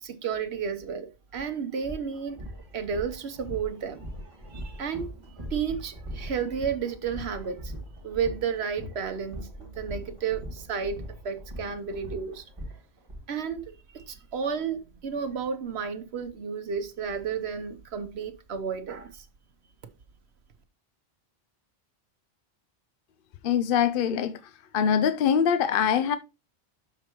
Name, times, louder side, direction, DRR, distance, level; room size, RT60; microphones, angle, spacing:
voice 1, 0.0-2.4 2.7-4.0 4.5-7.7 8.0-12.5 13.3-19.2, right 6 dB, 75° right, 1.2 m, -32 dB
sound 1, 1.3-1.4 1.8-13.2, equal, 30° right, 2.4 m, -40 dB
voice 2, 23.4-24.3 24.7-26.2, left 8 dB, 60° left, 0.7 m, -23 dB
12.0 x 4.7 x 3.0 m
omnidirectional pair, 1.1 m